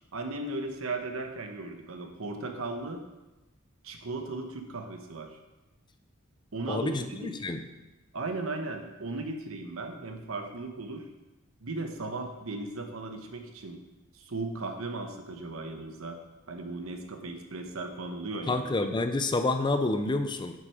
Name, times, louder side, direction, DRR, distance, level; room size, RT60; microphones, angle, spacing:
voice 1, 0.1-3.0 3.8-5.4 6.5-7.3 8.1-11.0 11.6-13.8 14.1-16.2 16.5-18.6, right 2 dB, 70° right, 4 dB, 1.0 m, -36 dB
voice 2, 6.7-7.6 18.5-20.5, left 2 dB, 20° left, 8 dB, 0.5 m, -28 dB
7.6 x 6.3 x 4.8 m, 1.1 s
head